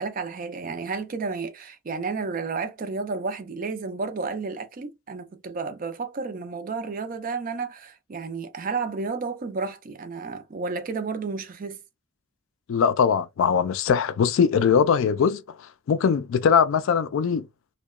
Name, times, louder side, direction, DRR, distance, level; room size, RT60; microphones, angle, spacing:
voice 1, 0.0-11.8, right 4 dB, 40° right, 0.4 m, -31 dB
voice 2, 12.7-15.4 15.9-17.5, left 7 dB, 70° left, 0.3 m, -21 dB
2.8 x 2.1 x 2.2 m
head